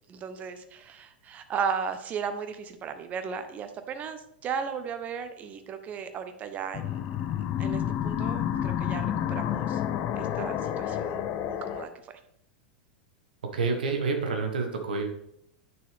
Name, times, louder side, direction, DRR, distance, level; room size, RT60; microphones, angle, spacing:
voice 1, 0.1-7.0 7.6-9.8 10.2-11.2 11.5-11.9, right 6 dB, 30° right, 9 dB, 1.0 m, -35 dB
sound 1, 6.7-11.9, left 10 dB, 35° left, 0.6 m, -30 dB
voice 2, 13.5-15.1, right 4 dB, 65° right, 4 dB, 1.6 m, -28 dB
8.8 x 6.5 x 3.5 m, 0.75 s
figure-of-eight pair, 95°, 5 cm